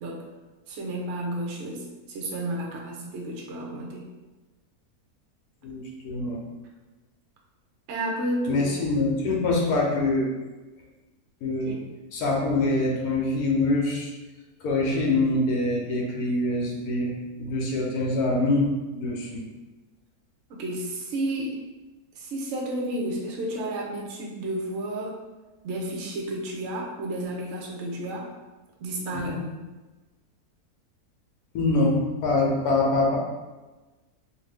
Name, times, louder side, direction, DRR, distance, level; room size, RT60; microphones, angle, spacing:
voice 1, 0.7-4.1 7.9-8.7 11.6-11.8 20.5-21.6 22.2-25.1 25.6-28.3 28.8-29.4, right 1 dB, 60° right, -1 dB, 0.8 m, -31 dB
voice 2, 5.6-6.4 8.5-10.3 11.4-11.7 12.1-14.1 14.6-19.4 29.1-29.4 31.5-33.2, left 2 dB, 80° left, -2 dB, 1.2 m, -25 dB
2.8 x 2.6 x 3.4 m, 1.2 s
omnidirectional pair, 1.6 m